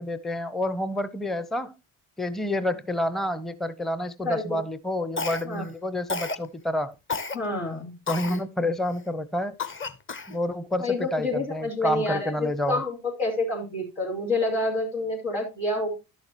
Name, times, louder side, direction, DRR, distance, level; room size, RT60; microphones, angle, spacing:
voice 1, 0.0-1.8 2.2-7.0 8.1-9.6 10.3-12.8, left 1 dB, ahead, 0.6 m, -29 dB
Cough, 5.2-5.7 6.1-6.5 7.1-7.4 8.1-8.4 8.9-9.0 9.6-10.4, left 4 dB, 30° left, 0.9 m, -31 dB
voice 2, 7.3-8.0 10.8-15.9, left 2 dB, 90° left, 3.6 m, -28 dB
11.5 x 6.5 x 2.9 m
hypercardioid pair, 50°, 41 cm